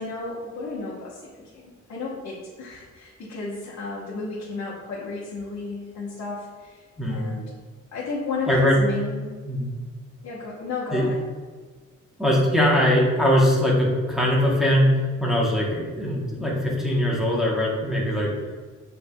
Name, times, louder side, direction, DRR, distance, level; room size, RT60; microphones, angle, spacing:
voice 1, 0.0-7.4 7.9-9.4 10.2-11.2, left 3 dB, 70° left, -7 dB, 1.1 m, -33 dB
voice 2, 8.5-8.8 9.4-9.7 10.9-11.1 12.2-18.3, equal, ahead, -4 dB, 0.9 m, -21 dB
7.0 x 3.3 x 2.2 m, 1.4 s
wide cardioid pair, 140°, 30 cm